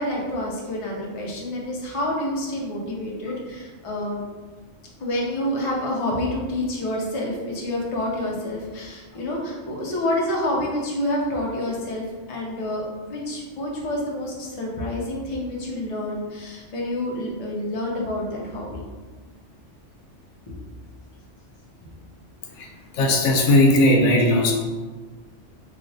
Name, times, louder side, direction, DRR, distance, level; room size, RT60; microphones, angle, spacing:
voice 1, 0.0-4.2 5.0-12.8 13.1-18.8 20.5-20.6 21.8-21.9, left 1 dB, 40° left, -2 dB, 0.4 m, -28 dB
voice 2, 23.0-24.5, left 1 dB, 90° left, 1 dB, 0.9 m, -17 dB
3.1 x 2.4 x 2.6 m, 1.3 s
omnidirectional pair, 1.2 m